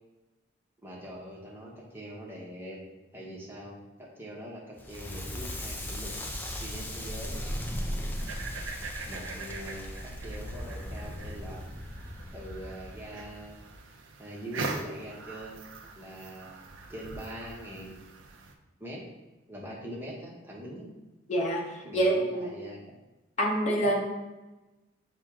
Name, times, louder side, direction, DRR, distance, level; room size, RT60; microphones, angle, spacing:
voice 1, 0.8-2.8 3.1-6.1 6.6-7.4 9.0-11.6 12.3-13.6 14.2-15.7 16.0-16.6 16.9-18.0 18.8-19.0 19.5-20.9 21.8-23.0 23.7-23.9, equal, 10° right, -4 dB, 0.8 m, -42 dB
Crackle, 4.8-13.7, equal, 10° left, 0.3 m, -38 dB
sound 1, 8.2-18.5, right 3 dB, 75° right, 0.5 m, -42 dB
voice 2, 21.3-22.5 23.4-24.0, right 1 dB, 35° left, -2 dB, 0.8 m, -26 dB
6.1 x 2.2 x 3.5 m, 1.1 s
head